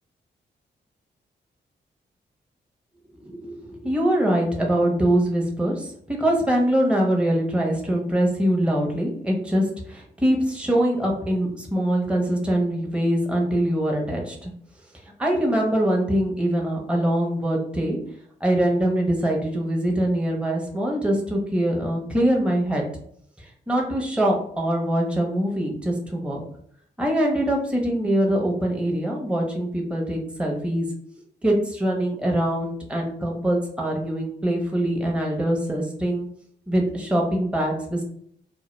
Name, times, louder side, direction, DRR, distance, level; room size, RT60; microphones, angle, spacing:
voice 1, 3.2-14.5 15.2-18.0 18.4-22.8 23.7-26.4 27.0-30.9 31.4-36.3 36.7-38.0, right 1 dB, 5° right, 0 dB, 0.7 m, -23 dB
2.1 x 2.0 x 3.1 m, 0.65 s
supercardioid pair, 45°, 19 cm